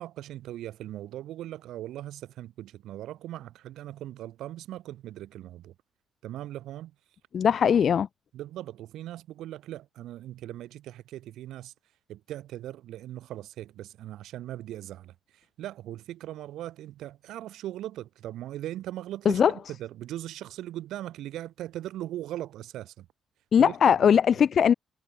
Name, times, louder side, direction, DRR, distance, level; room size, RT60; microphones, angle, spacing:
voice 1, 0.0-5.7 6.2-6.9 8.3-11.7 12.1-23.1 23.6-24.1, right 13 dB, 85° right, 1.1 m, -39 dB
voice 2, 7.3-8.1 19.3-19.5 23.5-24.7, left 8 dB, 55° left, 0.7 m, -20 dB
cardioid pair, 90°, 0 cm